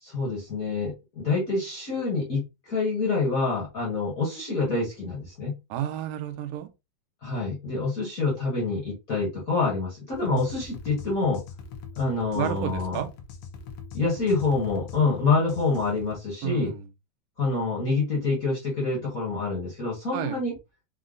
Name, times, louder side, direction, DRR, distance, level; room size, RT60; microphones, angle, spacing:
voice 1, 0.0-5.6 7.2-11.4 12.0-13.0 13.9-16.7 17.4-20.5, left 3 dB, 45° left, 1.1 m, -26 dB
voice 2, 5.7-6.7 10.3-10.4 12.4-13.1 16.4-16.9 20.1-20.4, right 11 dB, 80° right, 2.1 m, -31 dB
sound 1, 10.1-16.2, left 5 dB, 70° left, 1.9 m, -42 dB
5.5 x 2.1 x 3.8 m
omnidirectional pair, 3.5 m